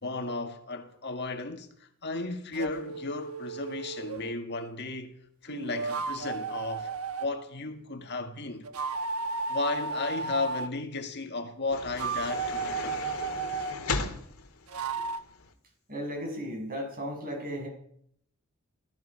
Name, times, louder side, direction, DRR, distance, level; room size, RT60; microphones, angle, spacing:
voice 1, 0.0-5.2 5.4-6.9 7.2-8.7 9.5-13.0, left 3 dB, 50° left, 1.7 m, -34 dB
sound 1, 2.5-4.4 5.5-7.3 8.6-10.7 11.8-13.8 14.7-15.2, right 4 dB, 90° right, 1.2 m, -34 dB
sound 2, 11.7-15.5, left 3 dB, 85° left, 2.0 m, -37 dB
voice 2, 15.9-17.7, equal, 40° right, 6.9 m, -35 dB
17.5 x 14.0 x 5.6 m
head